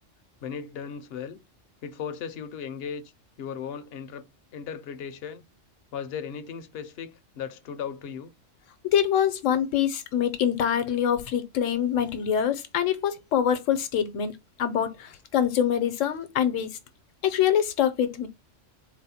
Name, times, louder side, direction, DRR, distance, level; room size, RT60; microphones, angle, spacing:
voice 1, 0.4-1.4 1.8-3.1 3.4-4.3 4.5-5.5 5.9-8.3 14.9-15.2, left 7 dB, 60° left, 0.7 m, -37 dB
voice 2, 8.8-14.3 14.6-16.8 17.2-18.3, left 9 dB, 80° left, 1.0 m, -25 dB
4.1 x 2.1 x 4.1 m
omnidirectional pair, 1.3 m